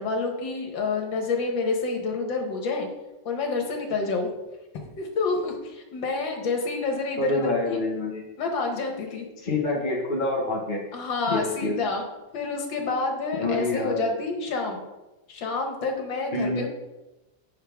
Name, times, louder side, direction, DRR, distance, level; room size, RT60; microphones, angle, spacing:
voice 1, 0.0-2.9 3.3-4.3 4.7-7.8 8.4-9.3 10.9-12.1 12.3-14.8 15.3-16.7, left 3 dB, 75° left, 2 dB, 2.0 m, -28 dB
voice 2, 7.2-8.2 9.4-10.8 11.3-11.8 13.4-14.1 16.3-16.7, left 2 dB, 30° left, -3 dB, 1.2 m, -27 dB
8.6 x 6.6 x 3.6 m, 1.0 s
omnidirectional pair, 2.1 m